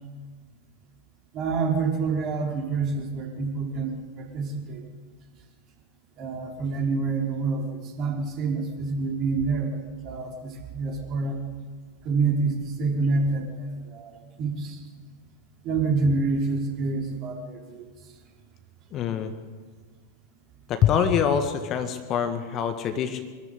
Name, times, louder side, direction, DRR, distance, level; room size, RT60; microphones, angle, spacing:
voice 1, 1.3-4.8 6.2-11.4 12.0-14.8 15.6-17.9, right 4 dB, 35° right, 1 dB, 5.0 m, -27 dB
voice 2, 18.9-19.3 20.7-23.2, left 8 dB, 35° left, 9 dB, 1.7 m, -24 dB
25.0 x 13.5 x 8.6 m, 1.5 s
figure-of-eight pair, 90°, 0 cm